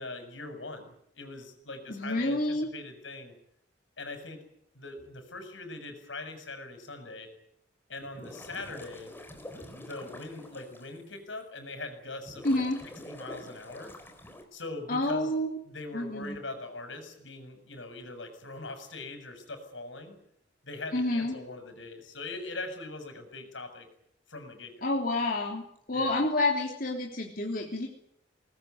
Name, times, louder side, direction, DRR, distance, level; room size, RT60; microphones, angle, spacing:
voice 1, 0.0-3.3 4.0-4.4 4.7-7.3 7.9-9.1 9.8-12.6 13.1-13.9 14.5-15.3 15.6-20.2 20.6-23.9 24.3-24.9 25.9-26.2, left 2 dB, 80° left, 7 dB, 6.8 m, -42 dB
voice 2, 1.9-2.7 12.4-12.8 14.9-15.5 15.9-16.4 20.9-21.4 24.8-27.9, left 2 dB, 45° left, 0 dB, 3.3 m, -29 dB
sound 1, 8.0-10.8 11.4-11.5 12.2-14.4, left 1 dB, 10° left, 4.0 m, -46 dB
23.5 x 20.0 x 9.5 m, 0.74 s
head